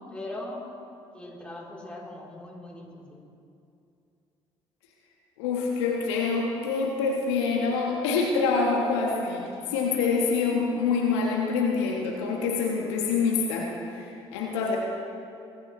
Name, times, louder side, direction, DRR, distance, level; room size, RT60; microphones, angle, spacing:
voice 1, 0.1-0.6 1.1-3.3, left 1 dB, 5° left, -4 dB, 3.5 m, -40 dB
voice 2, 5.4-14.8, left 4 dB, 75° left, -1 dB, 1.3 m, -26 dB
22.0 x 9.5 x 3.2 m, 2.6 s
hypercardioid pair, 50°, 15 cm